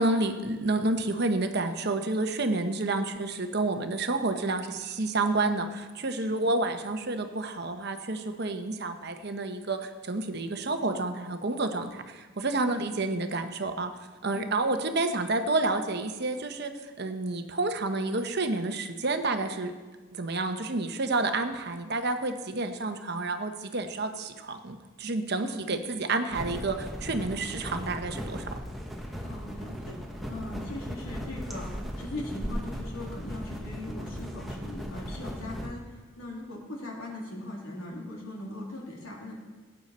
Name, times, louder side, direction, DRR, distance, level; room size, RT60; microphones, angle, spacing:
voice 1, 0.0-13.9 14.2-16.7 17.0-19.7 20.1-28.5, right 2 dB, 50° right, 7 dB, 0.9 m, -29 dB
voice 2, 6.2-6.5 12.6-12.9 14.3-14.6 25.4-25.7 29.2-30.0 30.3-31.7 32.0-39.4, left 1 dB, 80° left, -2 dB, 2.9 m, -40 dB
sound 1, 26.3-35.7, equal, ahead, 1.1 m, -37 dB
18.0 x 9.0 x 4.3 m, 1.3 s
head